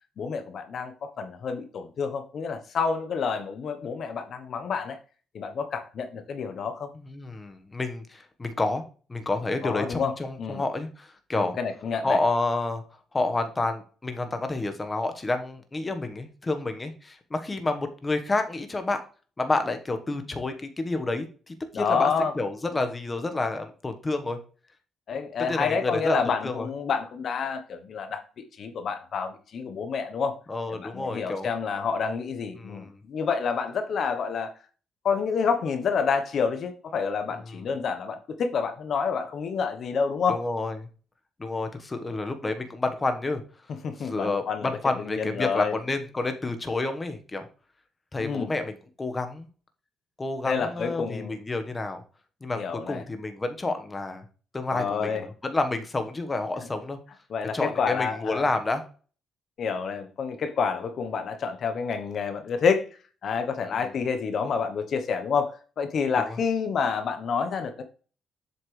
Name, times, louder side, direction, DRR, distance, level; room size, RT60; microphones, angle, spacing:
voice 1, 0.2-5.0 5.3-6.9 9.6-10.1 10.4-10.6 11.4-12.2 21.7-22.3 25.1-30.4 30.7-34.5 35.0-40.4 43.8-44.7 45.0-45.8 48.2-48.5 50.5-51.4 52.6-53.0 54.7-55.3 57.3-58.5 59.6-62.9 63.2-67.8, left 5 dB, 60° left, 8 dB, 1.0 m, -28 dB
voice 2, 6.9-8.8 9.1-11.6 12.0-12.8 13.1-19.0 19.4-22.1 22.3-24.4 25.5-26.2 26.4-26.7 30.5-31.5 32.6-33.0 40.3-40.8 41.4-43.4 44.0-47.5 48.1-49.5 50.2-52.0 52.4-54.2 54.5-57.0 57.5-58.8 63.7-63.8 66.3-66.4, left 2 dB, 25° left, 7 dB, 1.3 m, -29 dB
7.8 x 5.8 x 3.3 m, 0.37 s
cardioid pair, 90°, 0 cm